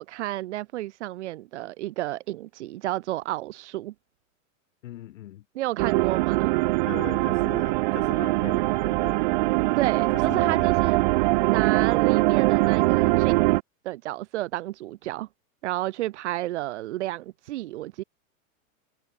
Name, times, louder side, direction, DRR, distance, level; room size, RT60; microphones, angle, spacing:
voice 1, 0.0-3.9 5.5-6.5 9.8-11.1 11.5-13.5 13.8-15.3 15.6-18.0, right 16 dB, 55° right, 6.7 m, -31 dB
voice 2, 4.8-5.4 6.9-9.2 10.1-10.7, left 14 dB, 65° left, 7.7 m, -40 dB
sound 1, 5.8-13.6, right 22 dB, 35° right, 0.9 m, -22 dB
supercardioid pair, 175°, 40 cm